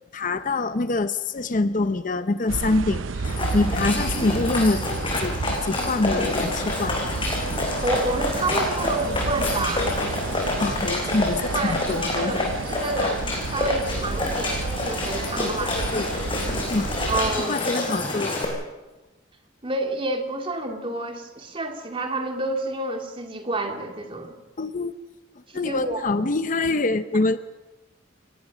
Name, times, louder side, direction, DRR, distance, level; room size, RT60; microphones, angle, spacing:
voice 1, 0.1-4.8 5.2-5.4 5.6-7.0 10.6-12.4 15.4-16.1 16.7-16.9 17.4-18.4 24.6-24.9 25.5-27.4, left 2 dB, 40° left, 12 dB, 0.7 m, -25 dB
sound 1, 2.5-17.4, right 4 dB, 85° right, 0.6 m, -31 dB
sound 2, 3.2-18.4, left 2 dB, 25° left, 6.0 m, -28 dB
voice 2, 7.8-10.0 11.5-11.8 12.1-15.8 17.1-17.7 19.6-24.4 25.5-26.0, right 2 dB, 30° right, 3 dB, 2.5 m, -29 dB
30.0 x 18.5 x 6.2 m, 1.1 s
head